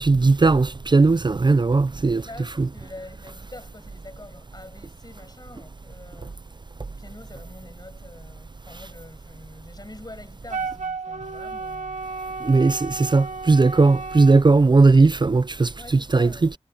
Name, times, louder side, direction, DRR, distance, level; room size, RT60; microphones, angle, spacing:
voice 1, 0.0-2.2 2.6-2.7 12.4-16.5, right 3 dB, 40° right, 0.4 m, -18 dB
voice 2, 2.2-6.4 6.9-12.0 15.8-16.6, left 2 dB, 35° left, 6.8 m, -45 dB
Wind instrument woodwind instrument, 10.5-14.4, right 4 dB, 90° right, 2.0 m, -33 dB
wide cardioid pair, 55°, 12 cm